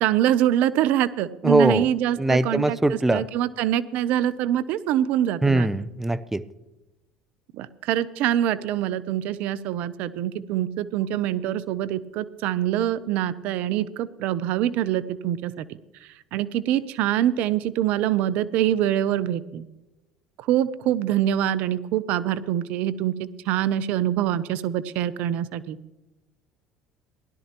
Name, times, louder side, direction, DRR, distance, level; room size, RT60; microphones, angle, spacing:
voice 1, 0.0-5.7 7.5-15.7 16.0-19.6 20.4-25.8, right 11 dB, 65° right, 17 dB, 0.6 m, -25 dB
voice 2, 1.4-1.9 2.2-3.3 5.4-6.4, right 2 dB, 10° right, 15 dB, 0.6 m, -21 dB
17.0 x 12.0 x 3.0 m, 1.0 s
hypercardioid pair, 70°, 3 cm